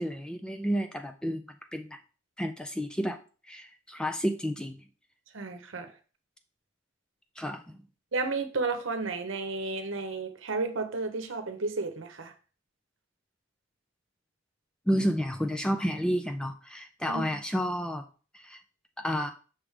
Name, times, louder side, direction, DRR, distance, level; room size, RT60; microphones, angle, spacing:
voice 1, 0.0-1.4 1.7-2.0 2.4-3.2 3.5-4.8 7.4-7.8 14.9-18.0 18.4-18.6 19.0-19.3, equal, 5° left, 0.3 m, -30 dB
voice 2, 5.3-5.9 8.1-12.3 17.1-17.2, right 3 dB, 70° right, 0.9 m, -32 dB
6.1 x 3.3 x 4.9 m
head